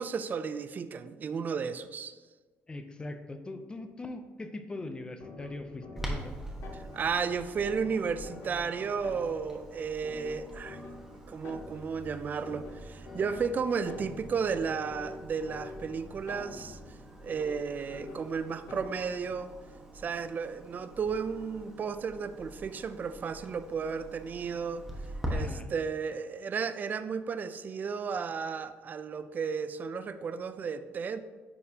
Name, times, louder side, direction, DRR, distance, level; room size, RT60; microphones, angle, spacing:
voice 1, 0.0-2.2 6.7-10.8 11.3-16.8 17.2-19.5 19.9-24.9 25.3-31.2, right 6 dB, 35° right, 12 dB, 0.3 m, -33 dB
voice 2, 2.7-6.4 25.3-25.7, left 2 dB, 20° left, 8 dB, 0.5 m, -41 dB
sound 1, 5.2-19.3, left 3 dB, 65° left, 0.8 m, -47 dB
Clock, 6.0-25.3, right 1 dB, 5° right, 1.1 m, -45 dB
9.4 x 4.2 x 2.8 m, 1.3 s
cardioid pair, 120°, 5 cm